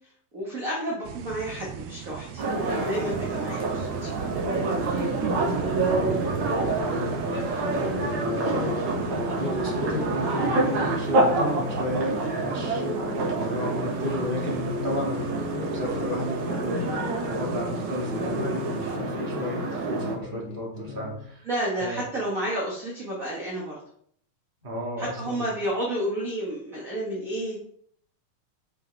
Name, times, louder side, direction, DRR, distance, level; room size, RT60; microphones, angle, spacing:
voice 1, 0.3-4.1 21.4-23.8 25.0-27.6, right 1 dB, 35° right, -4 dB, 1.5 m, -31 dB
sound 1, 1.0-19.0, right 10 dB, 85° right, 1.5 m, -40 dB
sound 2, 2.4-20.2, right 2 dB, 65° right, 3.0 m, -28 dB
voice 2, 5.9-21.5 21.8-22.0 24.6-25.4, equal, 20° right, -3 dB, 1.8 m, -33 dB
sound 3, 7.7-14.2 14.6-17.9 18.1-21.3, left 7 dB, 65° left, 1.2 m, -38 dB
9.1 x 6.2 x 3.4 m, 0.65 s
omnidirectional pair, 3.6 m